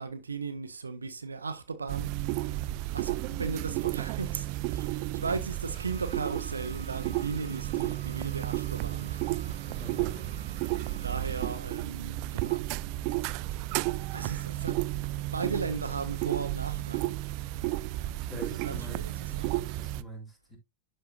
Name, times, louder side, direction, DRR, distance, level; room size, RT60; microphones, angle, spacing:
voice 1, 0.0-9.4 10.2-10.3 10.7-12.6 14.1-17.1 18.3-19.6, right 4 dB, 75° right, 0.9 m, -37 dB
sound 1, 1.9-20.0, right 17 dB, 45° right, 0.4 m, -33 dB
Bowed string instrument, 5.6-11.7, right 1 dB, 85° left, 1.9 m, -53 dB
voice 2, 9.6-10.5 18.1-20.6, right 1 dB, 5° left, 3.1 m, -44 dB
11.5 x 4.5 x 2.4 m
figure-of-eight pair, 90°, 0 cm